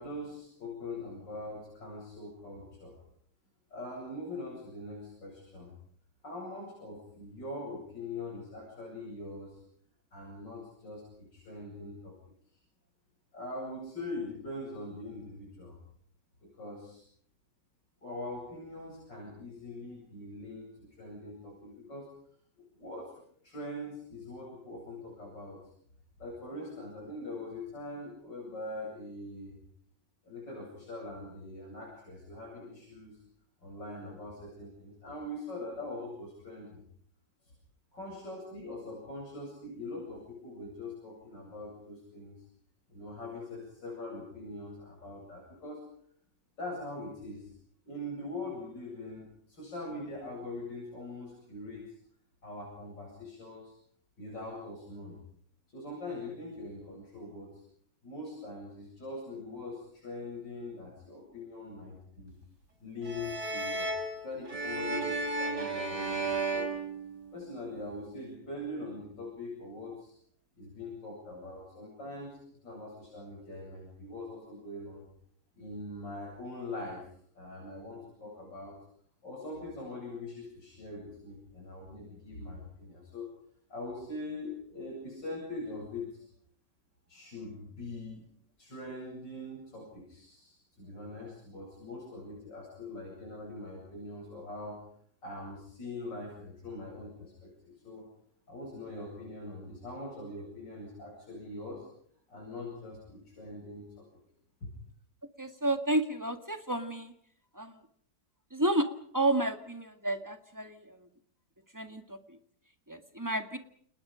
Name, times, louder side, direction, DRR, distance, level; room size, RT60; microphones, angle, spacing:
voice 1, 0.0-3.0 3.7-5.7 6.2-9.6 10.1-12.1 13.3-15.8 16.4-17.0 18.0-22.1 22.7-23.1 23.4-25.6 26.2-29.6 30.2-33.2 33.6-36.8 37.9-42.4 42.9-45.8 46.6-47.5 47.9-51.9 52.4-53.7 54.2-55.2 55.7-57.6 58.0-62.3 62.8-66.7 67.3-70.2 70.6-72.4 72.6-75.0 75.6-77.1 77.4-78.8 79.2-83.3 83.7-86.3 87.1-88.2 88.6-94.8 95.2-98.1 98.5-101.9 102.3-104.1 104.6-104.7, left 2 dB, 85° left, -2 dB, 8.9 m, -42 dB
sound 1, 63.0-67.6, right 2 dB, 70° right, 5.6 m, -34 dB
voice 2, 105.4-107.1 107.6-107.7 108.5-108.9 109.1-110.8 111.7-112.2 112.9-113.6, right 1 dB, 10° right, 7 dB, 2.0 m, -31 dB
30.0 x 28.5 x 5.2 m, 0.64 s
omnidirectional pair, 1.9 m